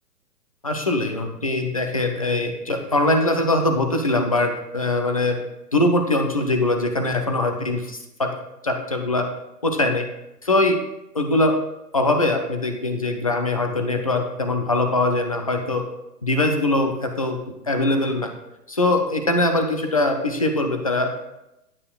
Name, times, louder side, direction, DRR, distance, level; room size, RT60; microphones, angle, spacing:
voice 1, 0.6-5.4 5.7-8.3 8.6-9.3 9.6-10.1 10.4-10.8 11.1-11.6 11.9-15.9 16.2-17.4 17.7-18.3 18.7-21.1, left 2 dB, 25° left, 5 dB, 0.4 m, -22 dB
9.7 x 8.1 x 2.3 m, 0.90 s
figure-of-eight pair, 130°, 48 cm